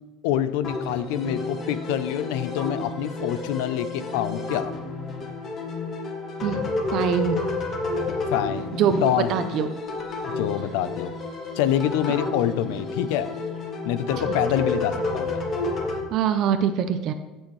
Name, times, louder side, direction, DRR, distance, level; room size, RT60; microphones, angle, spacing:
voice 1, 0.2-4.7 8.3-8.7 9.0-9.3 10.4-11.1 11.6-13.3 13.8-15.4, left 11 dB, 85° left, 14 dB, 0.6 m, -26 dB
sound 1, 0.6-16.0, left 3 dB, 40° left, 1.7 m, -30 dB
voice 2, 6.9-7.4 8.8-9.7 14.3-14.4 16.1-17.1, right 8 dB, 55° right, 9 dB, 0.6 m, -23 dB
15.0 x 6.2 x 3.2 m, 1.1 s
cardioid pair, 130°, 0 cm